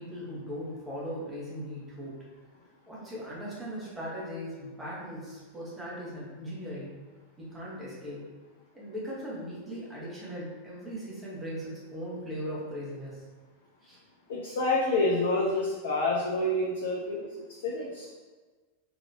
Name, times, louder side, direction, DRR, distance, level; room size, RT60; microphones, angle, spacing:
voice 1, 0.0-2.2 2.9-6.9 7.4-8.2 8.7-13.2 13.8-14.0, equal, 10° right, -7 dB, 1.3 m, -39 dB
voice 2, 14.3-17.2 17.6-18.1, left 2 dB, 60° left, -3 dB, 0.5 m, -28 dB
3.9 x 2.9 x 2.8 m, 1.3 s
figure-of-eight pair, 90°, 0 cm